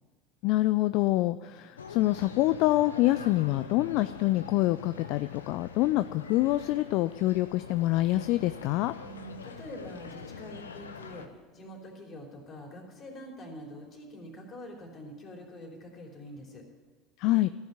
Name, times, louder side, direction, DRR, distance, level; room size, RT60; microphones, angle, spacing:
voice 1, 0.4-8.9 17.2-17.5, left 17 dB, 60° left, 13 dB, 0.3 m, -26 dB
sound 1, 1.8-11.3, left 6 dB, 85° left, 0.7 m, -44 dB
voice 2, 9.0-11.3 11.5-16.6, equal, 40° left, 0 dB, 3.4 m, -45 dB
14.0 x 6.5 x 9.5 m, 1.5 s
hypercardioid pair, 75°, 0 cm